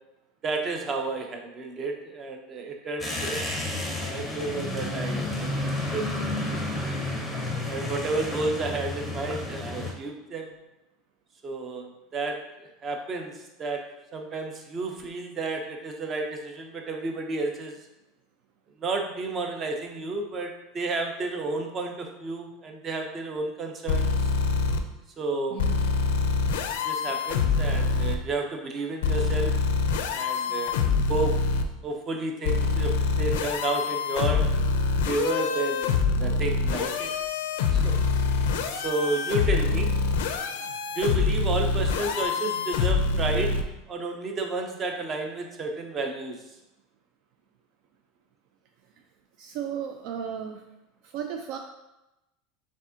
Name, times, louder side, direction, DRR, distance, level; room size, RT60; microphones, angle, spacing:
voice 1, 0.4-6.1 6.5-7.0 7.7-10.5 11.4-13.8 14.1-17.8 18.8-24.3 25.2-25.6 26.8-29.5 30.1-30.8 31.1-31.3 31.8-34.5 35.0-37.1 37.7-38.0 38.7-39.9 41.0-46.4, right 3 dB, 30° right, 3 dB, 0.7 m, -31 dB
sound 1, 3.0-9.9, left 2 dB, ahead, 0.8 m, -31 dB
sound 2, 23.9-24.8 25.6-28.2 29.0-31.6 32.4-43.6, left 4 dB, 85° left, 0.4 m, -25 dB
voice 2, 25.5-25.8 49.4-50.7 51.0-51.6, right 8 dB, 55° right, 5 dB, 0.3 m, -34 dB
4.7 x 3.5 x 2.8 m, 0.96 s
supercardioid pair, 140°, 0 cm